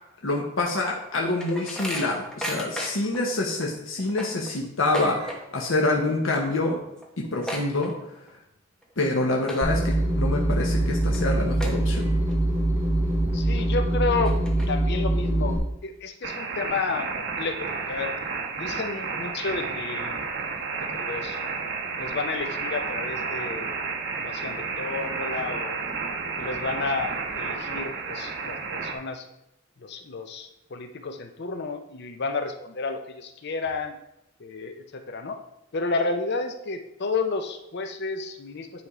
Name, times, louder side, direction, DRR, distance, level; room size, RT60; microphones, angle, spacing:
voice 1, 0.2-6.8 7.2-7.9 9.0-12.2, left 2 dB, 75° left, -1 dB, 1.0 m, -26 dB
sound 1, 1.0-3.2 3.6-3.7 4.0-5.7 6.0-6.3 6.6-6.7 7.0-8.4 8.8-9.1 9.4-9.9 10.4-10.5 11.1-11.2 11.6-12.3 12.8-12.9 13.6-13.7 14.1-15.0, equal, 5° left, 1.1 m, -35 dB
sound 2, 9.6-15.6, right 1 dB, 15° right, 1.7 m, -24 dB
voice 2, 13.3-14.4 14.7-18.1 18.6-20.2 20.8-21.4 21.9-23.7 24.1-25.8 26.2-29.3 29.8-34.0 34.4-35.4 35.7-38.9, left 4 dB, 60° left, 7 dB, 0.6 m, -31 dB
sound 3, 16.2-28.9, right 4 dB, 60° right, 1.1 m, -31 dB
9.4 x 3.5 x 4.9 m, 0.84 s
head